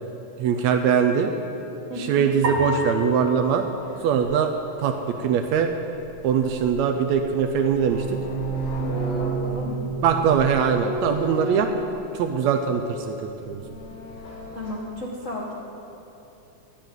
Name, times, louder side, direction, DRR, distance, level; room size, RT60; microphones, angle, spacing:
voice 1, 0.4-1.3 2.0-3.7 4.0-4.5 4.8-5.7 6.2-8.2 10.0-11.7 12.1-13.6, right 7 dB, 80° right, 5 dB, 1.7 m, -22 dB
voice 2, 1.9-2.3 9.2-9.8 14.5-15.5, left 1 dB, 85° left, -4 dB, 0.6 m, -33 dB
sound 1, 2.4-4.9, left 1 dB, 60° right, 2.2 m, -32 dB
sound 2, 4.2-4.3 6.0-6.7 7.1-12.6 13.4-14.7, right 2 dB, 70° left, 3.1 m, -31 dB
13.5 x 5.3 x 8.9 m, 2.9 s
omnidirectional pair, 3.5 m